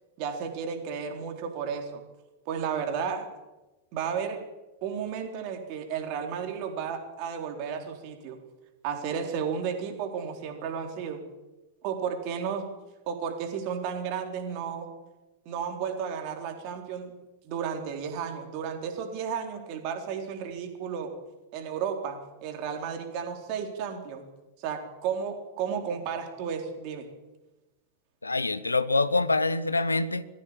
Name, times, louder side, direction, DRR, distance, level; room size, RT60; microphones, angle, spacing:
voice 1, 0.2-2.0 2.5-3.3 3.9-4.4 4.8-8.4 8.8-11.2 11.8-12.7 13.1-14.9 15.5-17.2 17.4-21.1 21.5-24.2 24.6-27.1, right 7 dB, 45° right, 4 dB, 3.9 m, -33 dB
voice 2, 28.2-30.2, left 3 dB, 80° left, 15 dB, 0.9 m, -25 dB
20.5 x 15.5 x 8.9 m, 1.1 s
figure-of-eight pair, 90°, 0 cm